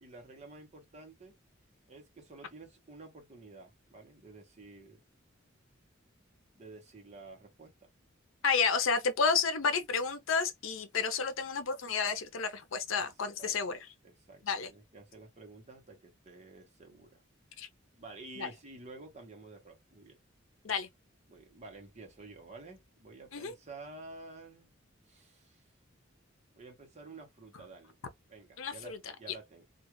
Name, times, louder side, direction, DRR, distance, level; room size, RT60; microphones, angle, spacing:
voice 1, 0.0-1.4 1.9-5.0 6.6-7.9 13.4-13.5 14.0-17.2 18.0-20.2 21.3-24.8 25.0-25.6 26.5-28.0 28.3-29.6, right 3 dB, 35° right, 1.0 m, -51 dB
voice 2, 8.4-13.8 14.4-14.7 17.6-17.7 18.4-18.5 20.6-20.9 23.3-23.5 28.6-29.0, left 5 dB, 85° left, 0.6 m, -31 dB
2.4 x 2.4 x 3.0 m
head